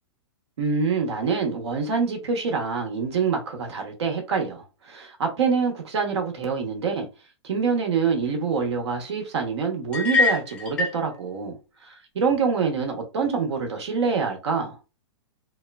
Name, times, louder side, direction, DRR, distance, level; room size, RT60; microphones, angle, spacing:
voice 1, 0.6-7.1 7.4-14.8, right 5 dB, 65° right, 0.9 m, -26 dB
sound 1, 9.9-11.0, left 4 dB, 5° left, 0.6 m, -23 dB
3.1 x 2.1 x 2.2 m
hypercardioid pair, 175°, 16 cm